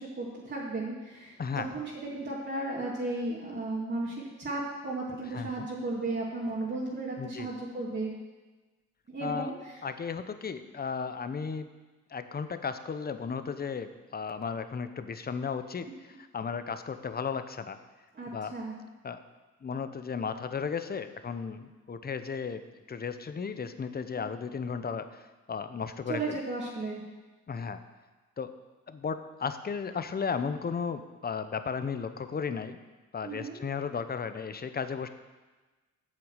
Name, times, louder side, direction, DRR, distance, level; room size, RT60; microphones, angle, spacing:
voice 1, 0.0-8.1 9.1-9.5 15.9-16.0 18.1-18.7 24.2-24.3 26.1-27.0 33.2-33.6, right 2 dB, 35° right, -5 dB, 2.4 m, -35 dB
voice 2, 5.3-5.7 7.2-7.5 9.2-9.5 9.8-11.7 12.1-17.8 18.3-18.5 19.0-19.2 19.6-22.6 22.9-26.4 27.5-27.8 28.4-28.5 28.9-32.8 33.1-35.1, left 6 dB, 30° left, 10 dB, 0.9 m, -35 dB
8.7 x 7.0 x 8.0 m, 1.2 s
cardioid pair, 90°, 30 cm